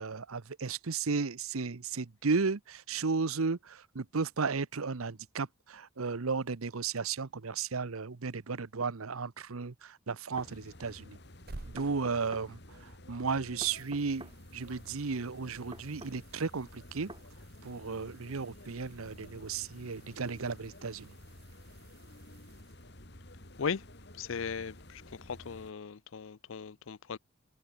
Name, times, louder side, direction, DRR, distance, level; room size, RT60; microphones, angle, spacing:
voice 1, 0.0-11.2 11.7-17.1 17.6-21.1, right 4 dB, 85° right, 0.8 m, -34 dB
sound 1, 8.8-8.9 10.1-10.5 11.8-12.5 13.6-14.4 15.7-16.2 17.1-17.3, right 2 dB, 20° right, 2.1 m, -48 dB
sound 2, 10.3-25.7, left 1 dB, 50° left, 3.4 m, -52 dB
sound 3, 11.2-13.3 13.7-23.3 26.1-26.2, right 2 dB, 45° right, 1.1 m, -55 dB
voice 2, 24.2-27.2, left 6 dB, 70° left, 0.5 m, -37 dB
head